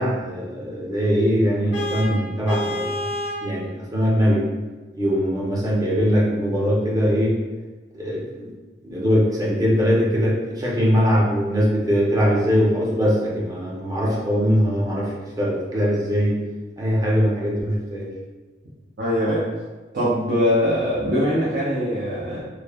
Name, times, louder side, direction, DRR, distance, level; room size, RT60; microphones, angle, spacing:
voice 1, 0.0-3.0 3.4-4.4 4.9-7.3 7.9-8.5 8.8-16.4 16.8-18.1, equal, 20° right, -5 dB, 0.6 m, -21 dB
Vehicle horn car horn honking, 1.7-3.5, equal, 75° left, 0.6 m, -28 dB
voice 2, 19.0-19.5 19.9-22.4, equal, 75° right, -9 dB, 0.7 m, -22 dB
3.1 x 2.1 x 2.3 m, 1.3 s
head